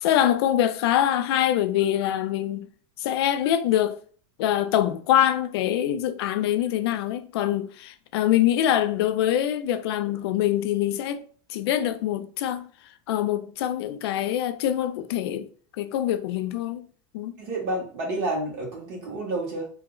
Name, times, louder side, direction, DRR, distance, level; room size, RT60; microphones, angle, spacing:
voice 1, 0.0-2.7 3.0-4.0 4.4-11.2 11.5-12.7 13.1-15.5 15.8-16.8 17.1-17.3, left 11 dB, 90° left, 0.5 m, -24 dB
voice 2, 17.4-19.7, right 2 dB, 50° right, 1.5 m, -29 dB
2.8 x 2.1 x 3.7 m
supercardioid pair, 160°, 13 cm